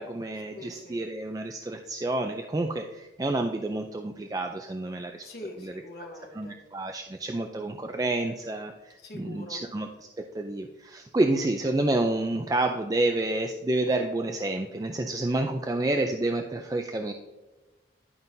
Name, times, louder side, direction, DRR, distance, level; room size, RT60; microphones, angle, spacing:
voice 1, 0.0-5.3 5.6-5.8 6.3-9.9 10.2-17.1, right 2 dB, 20° right, 4 dB, 0.3 m, -29 dB
voice 2, 0.5-1.0 5.2-6.6 9.0-9.6, left 2 dB, 60° left, 1 dB, 1.3 m, -43 dB
11.0 x 5.5 x 2.6 m, 1.1 s
head